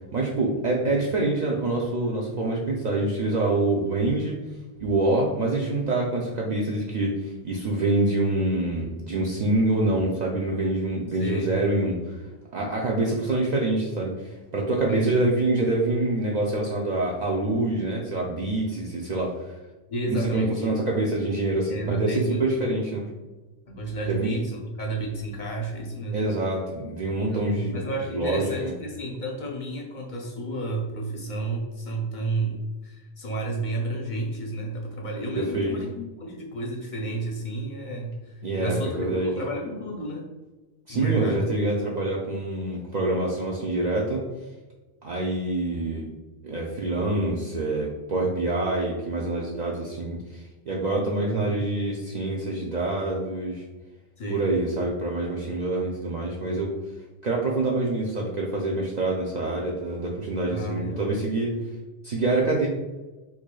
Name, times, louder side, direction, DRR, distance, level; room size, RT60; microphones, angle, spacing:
voice 1, 0.1-4.4 4.8-12.1 12.5-19.5 20.1-23.0 24.1-24.3 26.1-27.8 28.1-28.7 35.3-35.7 38.4-39.3 40.9-44.3 45.0-46.1 46.4-53.6 54.3-56.8 57.2-61.6 62.0-62.7, right 2 dB, 60° right, -3 dB, 0.5 m, -26 dB
voice 2, 11.2-11.6 14.8-15.2 19.9-20.8 21.7-22.4 23.7-26.2 27.3-40.3 40.9-41.5 51.3-51.6 54.2-54.5 60.5-61.1, right 2 dB, 50° left, 0 dB, 0.7 m, -31 dB
4.6 x 2.8 x 2.2 m, 1.2 s
omnidirectional pair, 1.1 m